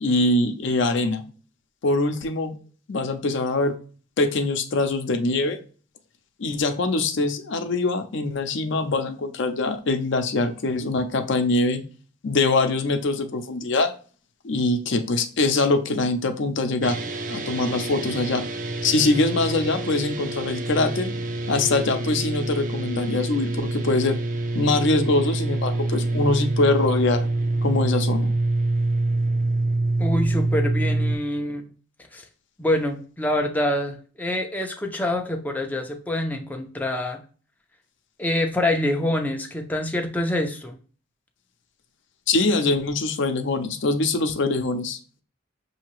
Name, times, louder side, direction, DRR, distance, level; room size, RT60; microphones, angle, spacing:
voice 1, 0.0-1.2 1.8-2.6 2.9-3.7 4.2-5.6 6.4-11.8 12.2-13.9 14.4-17.0 17.3-18.4 18.8-21.1 21.5-24.2 24.5-27.3 27.6-28.3 42.3-45.0, left 2 dB, 65° left, 7 dB, 0.6 m, -23 dB
sound 1, 16.8-31.2, right 2 dB, 45° right, 0.5 m, -26 dB
voice 2, 30.0-31.6 32.1-32.2 32.6-37.2 38.2-40.8, left 1 dB, 10° left, 3 dB, 0.4 m, -26 dB
5.7 x 2.7 x 3.0 m, 0.39 s
head